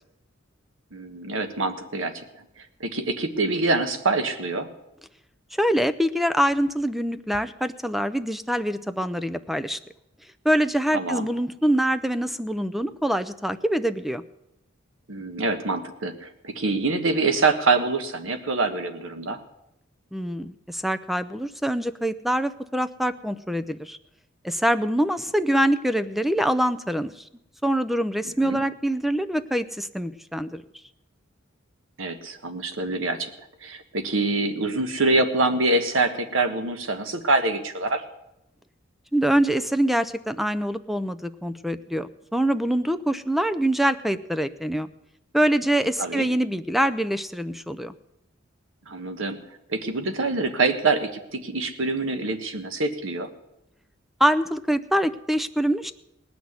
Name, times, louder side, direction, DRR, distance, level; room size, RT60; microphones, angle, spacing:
voice 1, 0.9-2.2 2.8-4.7 10.9-11.3 15.1-19.4 28.4-28.6 32.0-33.3 33.6-38.0 46.0-46.3 48.9-49.4 49.7-53.3, right 3 dB, 75° right, 8 dB, 1.4 m, -25 dB
voice 2, 5.6-9.8 10.4-14.2 20.1-24.0 24.4-27.1 27.6-30.6 39.1-44.9 45.3-47.9 54.2-55.9, right 1 dB, ahead, 12 dB, 0.5 m, -24 dB
18.5 x 6.3 x 9.4 m, 0.86 s
head